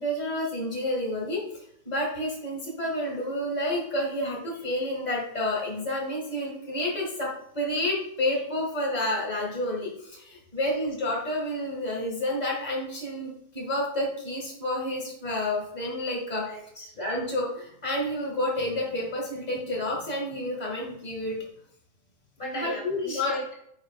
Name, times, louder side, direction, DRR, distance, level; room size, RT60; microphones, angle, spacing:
voice 1, 0.0-16.5 17.0-21.4 22.5-23.3, left 1 dB, 40° left, -2 dB, 0.5 m, -30 dB
voice 2, 16.4-16.9 22.4-23.5, equal, 15° left, -3 dB, 2.5 m, -37 dB
9.7 x 7.9 x 2.3 m, 0.71 s
omnidirectional pair, 4.2 m